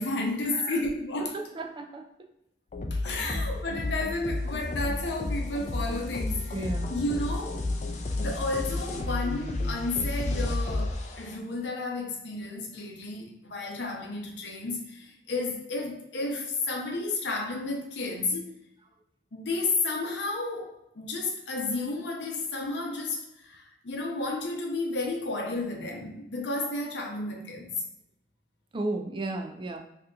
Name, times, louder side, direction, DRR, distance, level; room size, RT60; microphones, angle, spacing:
voice 1, 0.0-1.4 2.9-7.6 8.1-18.5 19.3-27.8, left 2 dB, 65° left, 0 dB, 0.7 m, -32 dB
voice 2, 1.3-2.1 3.2-3.3 6.5-6.9 28.7-29.8, right 2 dB, 25° right, 4 dB, 0.4 m, -34 dB
Bass Kick & Pluck, 2.7-11.4, left 2 dB, 40° left, 0.4 m, -31 dB
2.8 x 2.4 x 3.7 m, 0.83 s
head